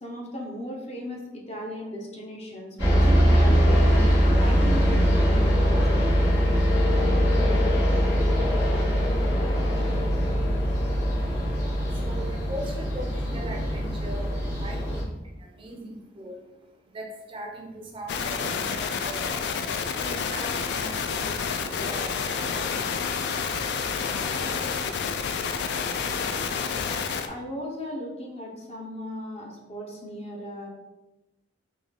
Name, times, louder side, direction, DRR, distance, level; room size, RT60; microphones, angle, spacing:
voice 1, 0.0-4.1 4.4-6.0 27.3-30.7, equal, 35° left, -1 dB, 0.7 m, -36 dB
sound 1, 2.8-15.0, equal, 80° left, 1.3 m, -22 dB
sound 2, 3.7-12.8, right 2 dB, 85° right, 0.7 m, -38 dB
voice 2, 10.7-23.2, right 1 dB, 30° right, 1 dB, 0.4 m, -41 dB
sound 3, 18.1-27.3, left 6 dB, 60° left, 0.3 m, -29 dB
3.7 x 2.3 x 3.3 m, 1.0 s
head